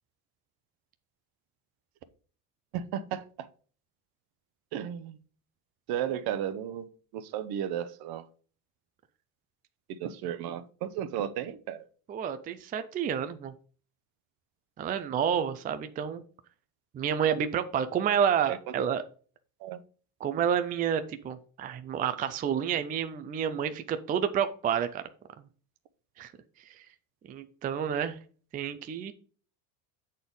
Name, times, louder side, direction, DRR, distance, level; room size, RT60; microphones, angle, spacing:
voice 1, 2.7-3.5 4.7-5.2 5.9-6.9 7.1-8.3 9.9-11.8 18.5-18.6 19.6-19.8, right 10 dB, 60° right, 0.9 m, -34 dB
voice 2, 12.1-13.5 14.8-16.2 16.9-19.0 20.2-25.0 26.2-26.3 27.3-28.2 28.5-29.1, right 8 dB, 20° right, 0.4 m, -29 dB
7.7 x 4.3 x 5.2 m
cardioid pair, 140°, 42 cm